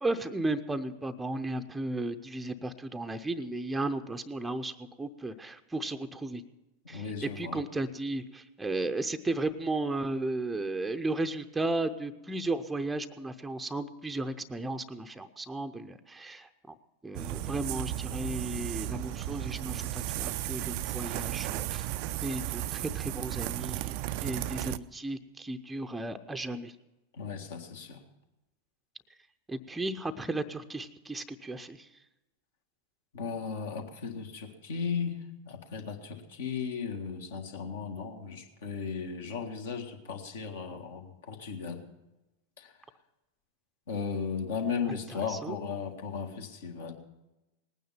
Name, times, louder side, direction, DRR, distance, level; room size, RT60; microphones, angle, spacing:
voice 1, 0.0-6.4 6.9-16.7 17.0-21.9 22.2-23.9 24.2-26.7 29.5-31.9 44.9-45.6, right 2 dB, 10° right, 7 dB, 0.7 m, -34 dB
voice 2, 6.9-7.6 27.2-28.0 33.1-35.2 35.5-41.8 42.6-42.7 43.9-46.9, left 6 dB, 60° left, 4 dB, 1.7 m, -36 dB
sound 1, 17.1-24.8, right 14 dB, 45° right, 0.4 m, -34 dB
19.5 x 9.3 x 5.7 m, 1.0 s
figure-of-eight pair, 90°, 0 cm